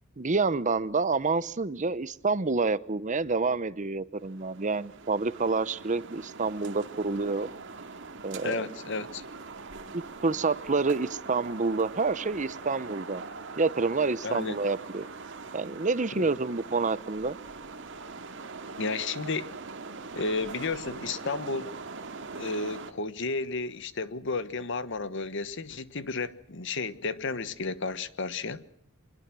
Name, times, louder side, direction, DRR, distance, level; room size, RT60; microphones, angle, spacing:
voice 1, 0.2-7.5 8.2-8.6 9.9-13.2 13.6-15.1 15.5-17.4, right 4 dB, 35° right, 0.8 m, -28 dB
sound 1, 4.2-22.9, right 4 dB, 60° right, 2.2 m, -42 dB
voice 2, 8.4-9.2 14.2-14.6 16.2-16.3 18.8-19.6 20.2-21.7 22.4-28.6, left 3 dB, 60° left, 1.2 m, -32 dB
25.0 x 21.5 x 6.2 m
head